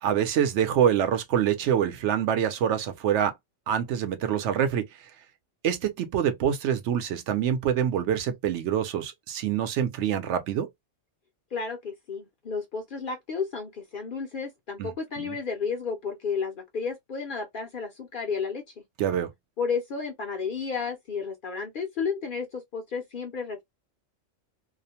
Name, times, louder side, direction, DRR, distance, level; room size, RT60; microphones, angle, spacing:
voice 1, 0.0-3.3 3.7-4.9 5.6-10.7 14.8-14.9 15.2-15.3 19.0-19.3, right 9 dB, 70° right, 0.9 m, -25 dB
voice 2, 11.5-18.6 19.6-23.6, left 5 dB, 55° left, 0.6 m, -32 dB
2.5 x 2.0 x 2.8 m
omnidirectional pair, 1.3 m